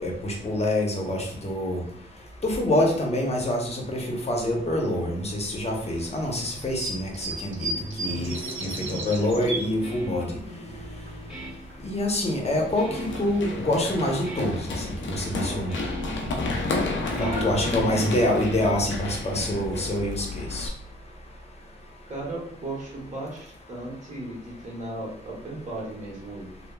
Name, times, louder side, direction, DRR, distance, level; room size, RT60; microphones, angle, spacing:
voice 1, 0.0-1.8 2.4-7.7 8.0-8.3 8.6-10.3 11.8-12.9 13.2-14.6 15.0-15.7 17.2-20.7, left 1 dB, 35° left, 0 dB, 0.8 m, -26 dB
sound 1, 5.7-10.3 10.6-11.7 12.0-14.6, right 2 dB, 90° right, 0.5 m, -37 dB
voice 2, 8.6-9.0 17.1-18.1 22.1-26.5, right 1 dB, 40° right, -4 dB, 1.2 m, -35 dB
Guitar, 9.5-18.1, equal, 5° right, 1.2 m, -41 dB
Run, 12.9-20.7, left 2 dB, 75° left, 0.5 m, -31 dB
3.1 x 2.0 x 2.2 m, 0.62 s
cardioid pair, 70°, 20 cm